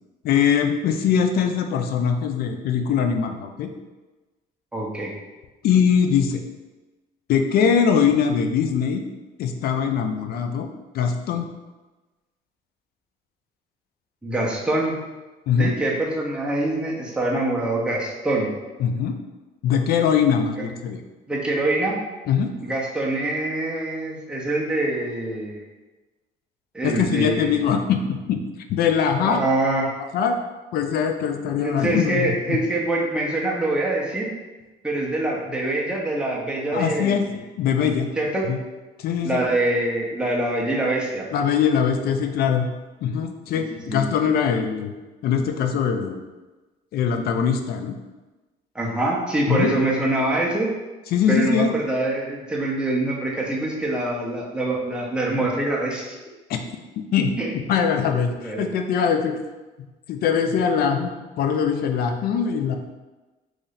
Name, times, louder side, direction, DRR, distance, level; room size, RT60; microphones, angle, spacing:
voice 1, 0.2-3.7 5.6-6.4 7.3-9.0 9.4-10.7 10.9-11.5 15.5-15.7 18.8-19.2 19.6-21.0 22.3-22.5 26.8-28.4 28.7-29.4 30.1-30.3 30.7-32.6 36.7-37.3 37.6-38.1 38.5-38.6 39.0-39.4 41.3-42.7 43.0-44.9 45.2-46.2 46.9-48.0 49.5-49.7 51.1-51.7 56.5-56.6 57.1-59.3 60.1-62.8, left 7 dB, 65° left, 5 dB, 0.4 m, -22 dB
voice 2, 4.7-5.1 14.2-15.0 15.6-18.5 21.3-22.0 22.6-25.6 26.7-27.6 29.2-29.9 31.6-34.3 34.8-37.4 38.2-38.5 39.2-41.3 43.5-43.6 43.9-44.0 48.7-50.7 51.3-56.2 57.4-57.5 58.4-58.7, right 2 dB, 5° right, -4 dB, 0.8 m, -24 dB
3.1 x 2.6 x 3.9 m, 1.2 s
cardioid pair, 110°, 17 cm